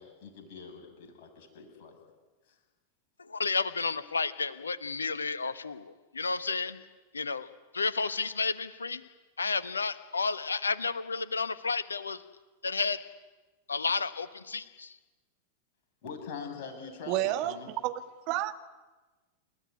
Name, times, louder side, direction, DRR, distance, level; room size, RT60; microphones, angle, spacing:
voice 1, 0.0-2.0 2.5-2.6 16.0-17.7, left 5 dB, 45° left, 7.6 m, -43 dB
voice 2, 3.3-6.8 7.1-7.5 7.7-9.0 9.4-12.2 12.6-13.0 13.7-14.9, left 4 dB, 75° left, 1.3 m, -31 dB
voice 3, 17.1-18.5, right 14 dB, 45° right, 1.9 m, -31 dB
29.5 x 15.5 x 9.9 m
figure-of-eight pair, 90°, 0 cm